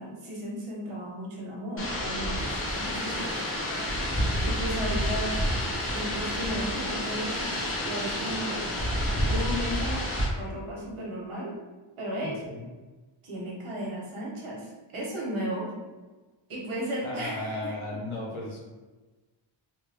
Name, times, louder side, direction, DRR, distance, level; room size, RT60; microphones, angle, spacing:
voice 1, 0.0-3.4 4.4-5.4 5.9-8.7 9.2-10.1 10.3-11.6 12.0-12.4 13.2-15.7 16.5-17.8, equal, 90° right, -4 dB, 1.3 m, -35 dB
sound 1, 1.8-10.3, equal, 25° left, 0.9 m, -29 dB
voice 2, 17.0-18.6, left 1 dB, 80° left, -3 dB, 1.1 m, -35 dB
3.2 x 2.6 x 3.4 m, 1.2 s
wide cardioid pair, 155°, 48 cm